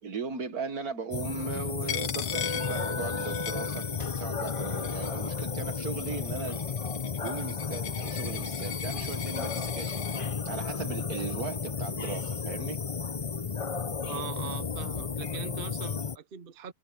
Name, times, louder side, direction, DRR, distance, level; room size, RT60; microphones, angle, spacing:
voice 1, 0.0-3.9 4.1-6.6 7.2-10.1 10.5-12.8, right 5 dB, 60° right, 2.1 m, -38 dB
sound 1, 1.1-16.2, left 5 dB, 55° left, 0.3 m, -33 dB
Coin (dropping), 1.9-4.2 4.5-5.3 6.0-10.2, left 10 dB, 80° left, 1.7 m, -39 dB
voice 2, 14.0-16.7, right 8 dB, 45° right, 0.8 m, -41 dB
omnidirectional pair, 1.8 m